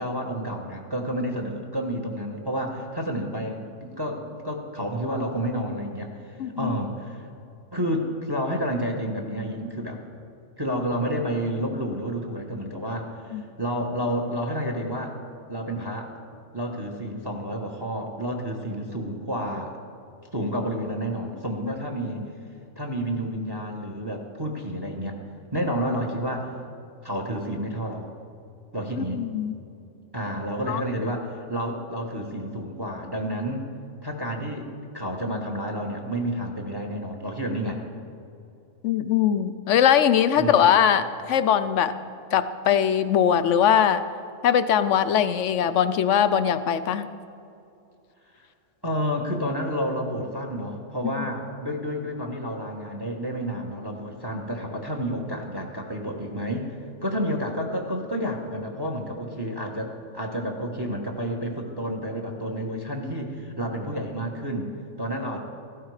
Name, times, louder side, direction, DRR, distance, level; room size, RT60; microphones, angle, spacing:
voice 1, 0.0-7.3 7.7-10.0 10.6-15.2 15.5-16.1 16.5-19.8 20.3-22.3 22.8-25.2 25.5-26.6 27.0-28.1 28.7-29.2 30.1-33.7 34.0-34.7 34.9-37.8 40.4-40.7 48.8-56.8 57.0-64.7 65.0-65.4, equal, 20° right, 2 dB, 1.2 m, -30 dB
voice 2, 6.4-6.7 13.3-13.4 21.6-21.7 22.0-22.2 29.0-29.5 30.7-30.8 38.8-41.9 42.3-44.0 44.4-47.1, left 9 dB, 65° left, 12 dB, 0.8 m, -21 dB
15.5 x 12.5 x 4.8 m, 2.6 s
omnidirectional pair, 1.5 m